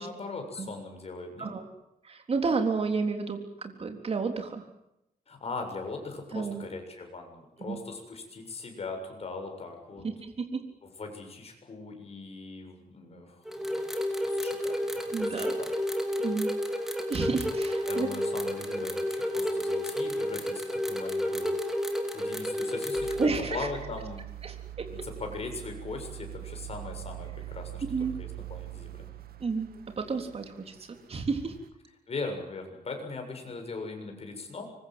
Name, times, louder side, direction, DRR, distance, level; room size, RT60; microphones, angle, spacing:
voice 1, 0.0-1.5 5.3-10.0 10.8-13.8 14.2-15.7 17.8-21.6 22.1-24.2 24.9-29.1 32.1-34.6, left 3 dB, 45° left, 4 dB, 7.2 m, -40 dB
voice 2, 2.0-4.6 6.3-6.7 7.6-7.8 10.0-10.6 15.1-15.6 16.2-16.5 17.1-18.1 23.2-23.7 24.4-24.9 27.9-28.2 29.4-31.6, right 4 dB, 40° right, 5 dB, 3.7 m, -31 dB
sound 1, 13.5-23.3, equal, 5° right, 4.5 m, -31 dB
sound 2, 23.0-31.2 31.6-31.7, right 14 dB, 90° right, 2.0 m, -43 dB
26.0 x 23.5 x 7.9 m, 0.84 s
wide cardioid pair, 135°, 15 cm